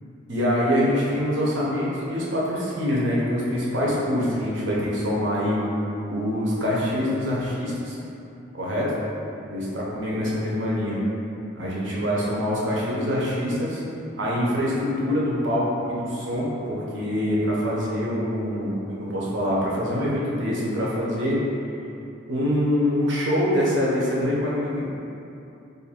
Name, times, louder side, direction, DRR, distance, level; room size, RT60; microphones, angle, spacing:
voice 1, 0.3-5.6 6.1-8.0 8.5-8.9 9.4-11.0 11.6-13.8 14.2-21.4 22.3-24.9, equal, 75° right, -6 dB, 0.8 m, -25 dB
2.6 x 2.6 x 4.2 m, 2.7 s
head